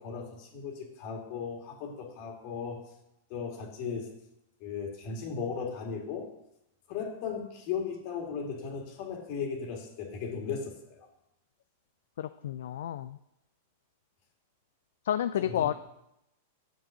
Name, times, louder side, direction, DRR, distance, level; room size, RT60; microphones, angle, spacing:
voice 1, 0.0-2.8 3.3-4.1 4.6-6.3 6.9-11.1 15.4-15.6, left 6 dB, 50° left, 1 dB, 2.2 m, -36 dB
voice 2, 12.2-13.2 15.1-15.7, left 10 dB, 70° left, 12 dB, 0.3 m, -30 dB
6.9 x 6.2 x 6.4 m, 0.86 s
hypercardioid pair, 100°, 0 cm